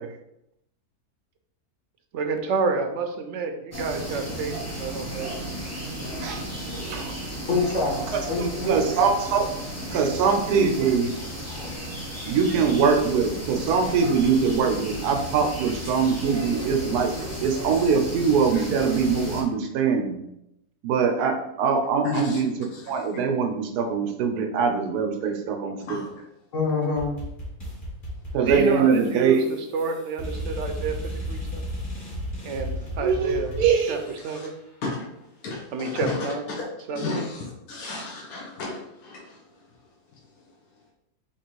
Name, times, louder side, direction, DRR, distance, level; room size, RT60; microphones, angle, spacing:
voice 1, 2.1-5.3 28.4-29.4 29.7-31.0 31.3-31.6 32.4-33.5 33.9-34.5 35.7-36.5 36.9-37.1, right 4 dB, 65° right, 5 dB, 0.8 m, -29 dB
sound 1, 3.7-19.4, right 1 dB, 15° left, 0.7 m, -34 dB
voice 2, 6.8-7.2 7.9-8.1 8.4-9.5 9.9-11.1 12.3-17.1 17.4-20.2 20.8-22.5 22.9-26.0 28.3-29.5 33.0-34.0, right 5 dB, 90° right, 4 dB, 1.2 m, -23 dB
voice 3, 7.5-8.8 10.5-10.6 11.5-11.8 26.5-27.1, left 3 dB, 55° left, -2 dB, 1.4 m, -26 dB
voice 4, 22.0-22.4 25.9-26.1 34.3-34.4 34.9-35.0 35.4-36.2 36.6-36.7 36.9-37.4 37.7-39.2, left 3 dB, 70° left, -2 dB, 1.3 m, -32 dB
sound 2, 27.0-34.3, equal, 35° left, 1.8 m, -34 dB
3.6 x 3.0 x 4.5 m, 0.82 s
omnidirectional pair, 1.6 m